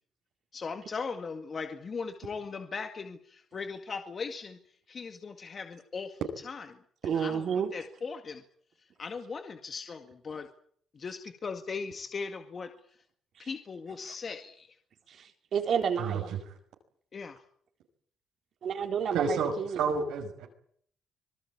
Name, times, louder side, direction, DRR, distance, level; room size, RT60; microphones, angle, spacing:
voice 1, 0.5-4.6 4.9-6.2 6.5-6.7 7.0-7.5 7.7-8.4 9.0-10.5 10.9-12.7 13.4-14.8 17.1-17.4, left 5 dB, 40° left, 6 dB, 2.0 m, -38 dB
voice 2, 7.1-7.7 13.4-13.5 15.1-16.3 18.6-19.8, right 7 dB, 60° right, 5 dB, 3.8 m, -30 dB
voice 3, 19.1-20.5, right 5 dB, 90° right, 2 dB, 5.8 m, -30 dB
25.5 x 19.5 x 8.7 m, 0.64 s
cardioid pair, 90°, 0 cm